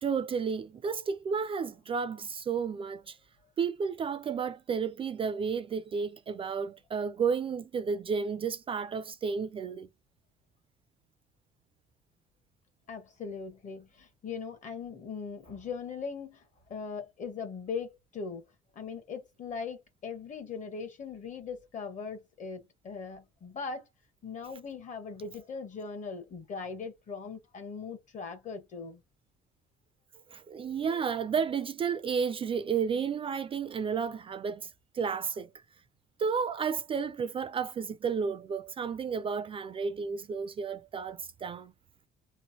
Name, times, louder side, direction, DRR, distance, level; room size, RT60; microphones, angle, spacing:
voice 1, 0.0-3.2 3.6-9.9 30.3-35.5 36.2-41.7, right 6 dB, 35° right, 0.4 m, -32 dB
voice 2, 12.9-16.4 16.7-18.4 18.7-23.9 24.2-29.0, left 5 dB, 45° left, 1.0 m, -40 dB
3.1 x 2.0 x 2.7 m
cardioid pair, 110°, 17 cm